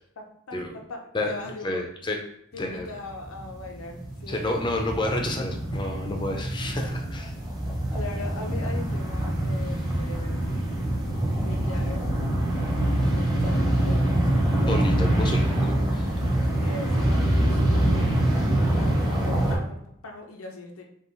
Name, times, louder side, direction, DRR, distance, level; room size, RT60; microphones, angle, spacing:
voice 1, 0.2-1.8 2.5-4.6 7.9-10.6 11.4-12.1 13.0-14.8 16.6-17.9 18.8-20.8, left 2 dB, 90° left, 2 dB, 0.8 m, -40 dB
voice 2, 1.6-2.3 2.6-2.9 4.3-7.3 14.7-16.1, left 1 dB, 20° left, 2 dB, 0.5 m, -29 dB
sound 1, 2.6-2.7 3.0-19.6, right 1 dB, 20° right, 0.8 m, -25 dB
5.3 x 2.4 x 3.1 m, 0.75 s
head